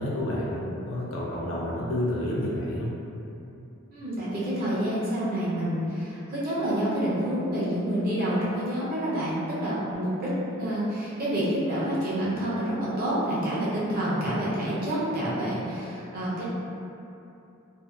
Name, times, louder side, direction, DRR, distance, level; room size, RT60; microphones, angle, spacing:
voice 1, 0.0-2.9, left 1 dB, 60° left, -6 dB, 0.5 m, -29 dB
voice 2, 3.9-16.4, right 1 dB, 45° right, -9 dB, 0.6 m, -28 dB
2.5 x 2.1 x 2.3 m, 2.8 s
head